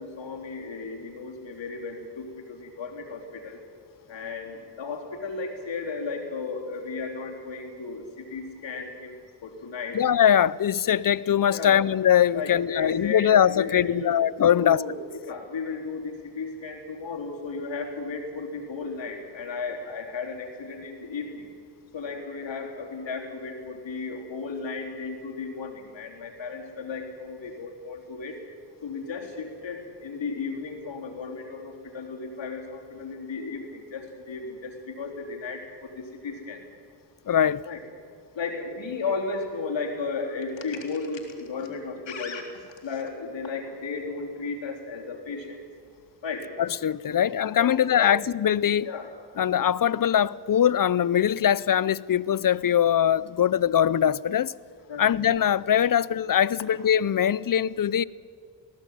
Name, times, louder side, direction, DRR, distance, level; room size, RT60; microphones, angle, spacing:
voice 1, 0.0-3.6 4.1-10.0 11.5-11.8 12.3-14.2 14.5-21.5 21.9-28.4 28.8-36.6 37.7-37.8 38.4-45.6 46.2-46.5 47.6-48.1 48.8-49.5 54.9-55.1, left 4 dB, 85° left, 3.8 m, -34 dB
voice 2, 9.9-14.8 37.3-37.6 46.6-48.9 49.4-54.5 55.0-58.0, left 9 dB, 50° left, 0.6 m, -22 dB
20.0 x 16.5 x 9.2 m
cardioid pair, 65°, 44 cm